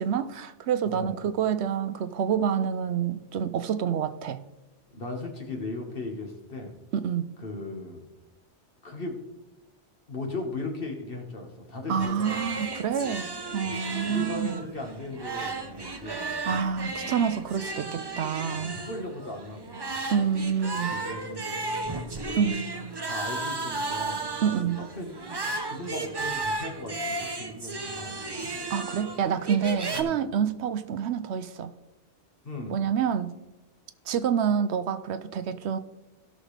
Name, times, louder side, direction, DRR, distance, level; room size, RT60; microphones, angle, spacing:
voice 1, 0.0-4.4 6.9-7.3 11.9-14.7 16.4-18.8 20.1-21.0 22.4-23.0 24.4-24.8 28.7-31.7 32.7-33.3 34.1-35.8, right 7 dB, 70° right, 12 dB, 0.8 m, -27 dB
voice 2, 0.8-1.2 4.9-6.7 7.4-8.0 8.8-9.1 10.1-12.6 13.6-16.6 16.9-17.1 18.5-19.9 20.7-22.5 23.1-25.1 25.4-28.6 29.9-30.2 32.4-32.8, left 2 dB, 50° left, 2 dB, 1.7 m, -38 dB
sound 1, 12.0-30.0, right 3 dB, 25° right, 0.6 m, -34 dB
16.5 x 6.3 x 3.3 m, 1.0 s
omnidirectional pair, 1.2 m